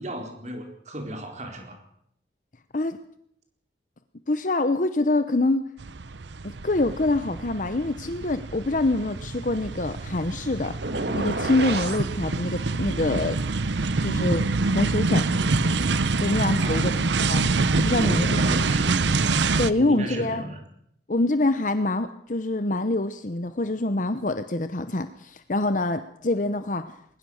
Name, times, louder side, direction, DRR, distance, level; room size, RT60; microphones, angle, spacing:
voice 1, 0.0-1.8 16.6-17.1 17.9-19.1 19.7-20.6, right 1 dB, 40° right, 3 dB, 4.3 m, -35 dB
voice 2, 4.3-5.6 6.4-13.4 14.0-15.3 16.2-16.9 17.3-17.5 17.8-18.4 19.6-20.4 21.1-27.0, left 2 dB, 45° left, 10 dB, 0.9 m, -25 dB
sound 1, 5.8-19.7, right 3 dB, 85° right, 0.8 m, -26 dB
sound 2, 10.8-12.1, right 2 dB, 70° right, 2.0 m, -29 dB
21.0 x 20.0 x 6.5 m, 0.69 s
head